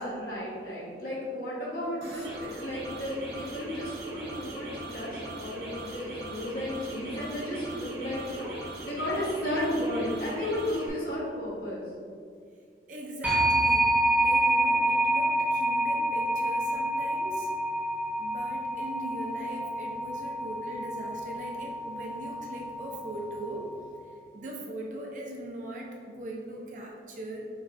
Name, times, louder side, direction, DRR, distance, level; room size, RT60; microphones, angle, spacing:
voice 1, 0.0-11.8 18.8-18.9, left 1 dB, 55° left, -7 dB, 1.4 m, -33 dB
sound 1, 2.0-10.9, right 2 dB, 65° right, 0.8 m, -40 dB
voice 2, 12.9-17.5 18.2-23.7 24.3-27.5, right 1 dB, 45° right, -1 dB, 0.6 m, -40 dB
sound 2, 13.2-23.9, right 1 dB, 10° right, 0.7 m, -28 dB
6.2 x 3.1 x 2.6 m, 2.2 s
head